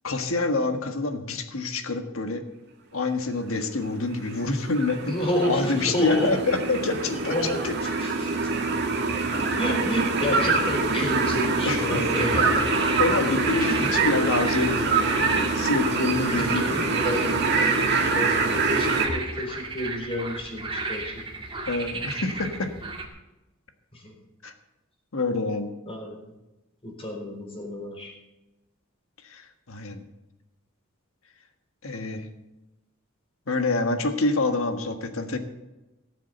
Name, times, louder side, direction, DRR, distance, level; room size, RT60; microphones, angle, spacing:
voice 1, 0.0-2.4 2.9-7.3 7.6-7.7 11.6-12.1 13.0-16.7 21.7-22.7 24.4-24.5 25.1-25.7 29.2-30.0 31.8-32.3 33.5-35.4, left 3 dB, 70° left, 7 dB, 1.5 m, -27 dB
sound 1, 4.0-19.1, right 3 dB, 50° right, 1.9 m, -25 dB
voice 2, 5.1-6.3 7.2-7.6 8.0-8.5 9.6-12.9 13.6-14.1 16.3-17.4 18.1-18.4 18.7-21.1 23.9-24.1 25.9-26.2 26.8-28.1, left 1 dB, 25° left, 0 dB, 4.1 m, -30 dB
sound 2, 12.1-23.1, right 3 dB, 25° right, 2.1 m, -34 dB
17.5 x 7.4 x 6.8 m, 1.0 s
head